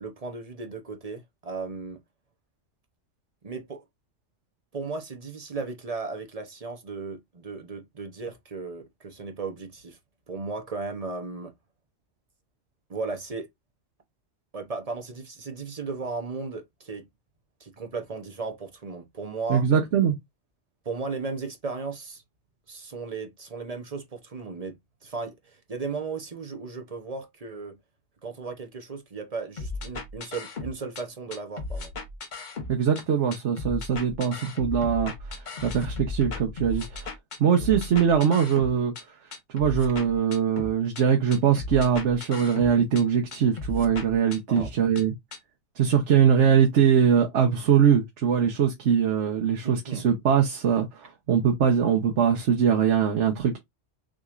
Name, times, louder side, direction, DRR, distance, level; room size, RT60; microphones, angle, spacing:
voice 1, 0.0-2.0 3.4-3.8 4.7-10.0 10.3-11.5 12.9-13.5 14.5-17.1 17.6-19.7 20.8-22.2 22.7-24.8 25.0-27.8 28.2-31.9 37.6-37.8 44.5-44.7 49.6-50.1, right 4 dB, 35° right, 0.9 m, -35 dB
voice 2, 19.5-20.1 32.7-37.1 37.4-38.9 39.5-45.1 45.8-53.6, right 7 dB, 90° right, 1.2 m, -22 dB
sound 1, 29.6-31.0 31.3-33.0 33.3-39.0 39.3-41.0 41.3-43.0 43.3-45.0 45.3-45.4, left 3 dB, 45° left, 0.9 m, -36 dB
6.2 x 3.1 x 2.5 m
omnidirectional pair, 1.2 m